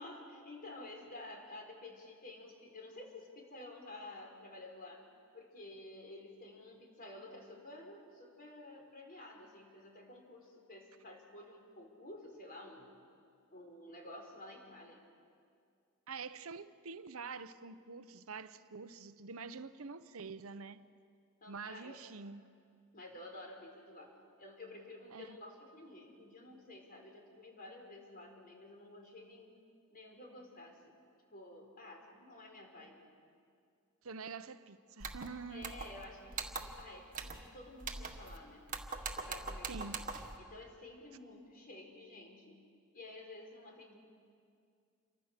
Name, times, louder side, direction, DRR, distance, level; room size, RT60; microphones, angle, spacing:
voice 1, 0.0-5.1 5.3-12.9 13.5-15.1 21.4-22.0 22.9-29.6 29.9-30.9 31.3-33.0 35.5-38.6 39.2-40.0 40.4-42.6 42.9-44.0, left 2 dB, 45° left, 4.7 m, -51 dB
voice 2, 16.1-20.8 21.5-22.4 25.1-25.4 34.0-35.7 39.7-40.0, right 4 dB, 75° right, 0.8 m, -46 dB
sound 1, 35.0-35.3 35.6-36.0 36.3-36.8 37.1-37.5 37.8-38.4 38.7-40.4, right 4 dB, 40° right, 1.7 m, -42 dB
28.5 x 24.5 x 6.7 m
head